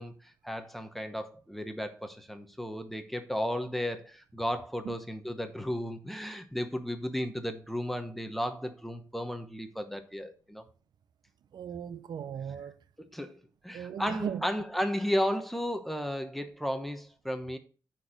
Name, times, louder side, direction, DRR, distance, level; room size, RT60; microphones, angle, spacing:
voice 1, 0.0-10.6 13.0-17.6, equal, ahead, 0.9 m, -34 dB
voice 2, 11.5-12.8 13.7-14.4, right 8 dB, 75° right, 0.5 m, -37 dB
9.3 x 4.5 x 5.0 m
wide cardioid pair, 145°, 7 cm